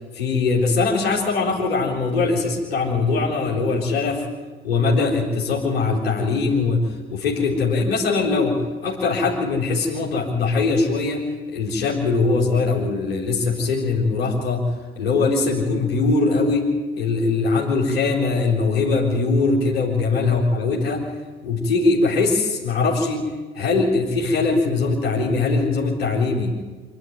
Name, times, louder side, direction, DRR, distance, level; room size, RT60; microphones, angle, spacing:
voice 1, 0.1-4.2 4.6-14.7 14.9-21.0 21.4-23.3 23.5-26.6, left 3 dB, 80° left, -3 dB, 4.2 m, -21 dB
25.5 x 12.0 x 9.5 m, 1.3 s
figure-of-eight pair, 50°, 29 cm